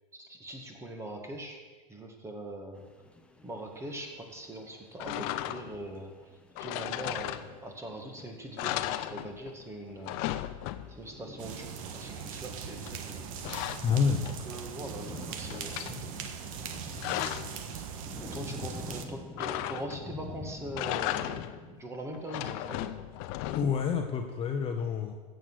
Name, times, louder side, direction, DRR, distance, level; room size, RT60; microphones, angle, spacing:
voice 1, 0.1-1.6 1.9-2.9 3.4-10.4 10.9-13.3 13.8-13.9 14.5-16.0 18.0-22.9, right 1 dB, 15° right, 3 dB, 2.1 m, -42 dB
sound 1, 2.7-21.4, left 2 dB, 5° left, 1.0 m, -49 dB
sound 2, 5.0-5.9 6.6-7.8 8.2-8.3 8.6-9.6 9.9-11.2 12.9-14.6 15.0-16.0 16.6-17.6 19.4-20.2 20.6-21.7 22.1-23.9, left 14 dB, 55° left, 0.8 m, -36 dB
sound 3, 11.4-19.0, right 7 dB, 70° right, 1.4 m, -40 dB
voice 2, 13.8-14.3 23.5-25.1, left 6 dB, 30° left, 4 dB, 1.0 m, -28 dB
14.5 x 7.9 x 6.4 m, 1.4 s
supercardioid pair, 120°, 18 cm